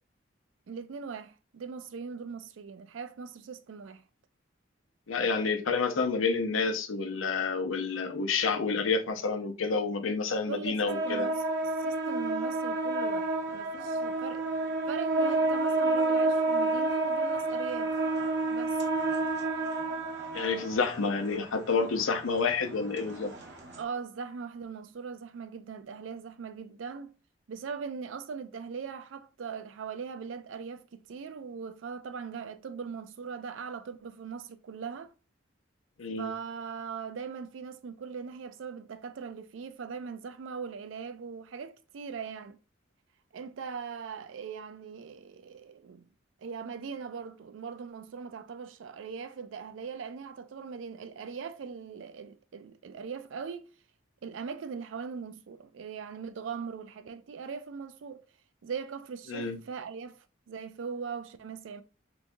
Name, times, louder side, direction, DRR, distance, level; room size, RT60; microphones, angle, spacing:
voice 1, 0.7-4.0 10.5-14.5 14.9-17.9 18.5-18.8 23.8-27.1 27.5-35.1 36.2-42.6 43.3-46.1 46.4-53.7 54.2-58.2 58.6-61.8, right 6 dB, 75° right, 0.4 m, -40 dB
voice 2, 5.1-11.3 20.3-23.3 36.0-36.3 59.3-59.6, left 4 dB, 90° left, 0.6 m, -29 dB
sound 1, 10.9-23.8, right 2 dB, 60° right, 0.8 m, -30 dB
3.5 x 3.1 x 2.5 m
head